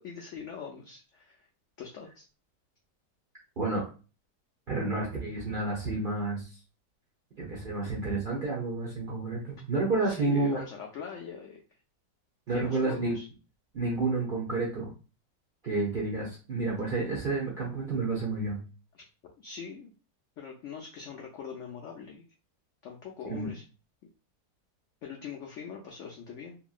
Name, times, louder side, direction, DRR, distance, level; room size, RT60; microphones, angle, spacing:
voice 1, 0.0-1.5 1.8-2.2 10.0-11.6 12.5-13.3 18.9-19.0 19.4-19.9 20.4-22.2 22.8-23.6 25.0-26.6, left 6 dB, 80° left, 1 dB, 0.6 m, -42 dB
voice 2, 4.7-6.5 7.4-10.6 12.5-13.1 13.7-14.9 15.6-18.6 23.2-23.5, right 3 dB, 50° right, -4 dB, 0.6 m, -30 dB
2.9 x 2.6 x 2.3 m, 0.34 s
omnidirectional pair, 1.8 m